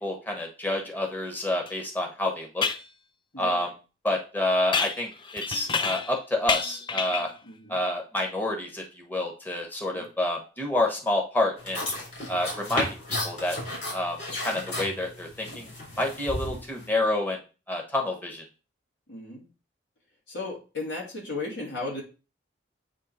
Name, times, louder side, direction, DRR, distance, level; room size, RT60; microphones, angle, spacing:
voice 1, 0.0-2.6 3.4-3.7 4.0-7.3 7.7-11.8 12.3-12.9 13.2-13.6 13.9-14.2 14.4-15.7 16.0-17.4 17.7-18.4, left 1 dB, 10° left, 0 dB, 1.2 m, -28 dB
sound 1, 1.7-1.8 2.6-2.9 4.7-6.2 6.5-7.4, left 5 dB, 25° left, 0.4 m, -29 dB
voice 2, 3.3-3.6 7.4-7.8 9.9-10.1 16.4-16.6 19.1-19.5 20.3-22.0, left 3 dB, 70° left, -4 dB, 3.0 m, -35 dB
sound 2, 11.6-16.9, left 1 dB, 45° left, 4.0 m, -34 dB
8.2 x 3.2 x 4.3 m, 0.32 s
head